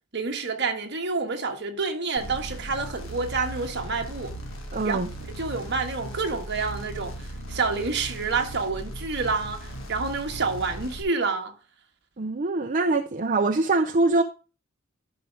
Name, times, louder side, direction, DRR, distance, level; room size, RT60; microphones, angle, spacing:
voice 1, 0.1-4.3 4.8-5.0 5.3-7.1 7.5-11.5, right 4 dB, 55° right, 1.4 m, -28 dB
sound 1, 2.2-11.0, right 1 dB, 75° left, 1.7 m, -38 dB
voice 2, 4.7-5.1 12.2-14.2, right 3 dB, 40° right, 0.6 m, -23 dB
12.0 x 5.2 x 3.3 m
head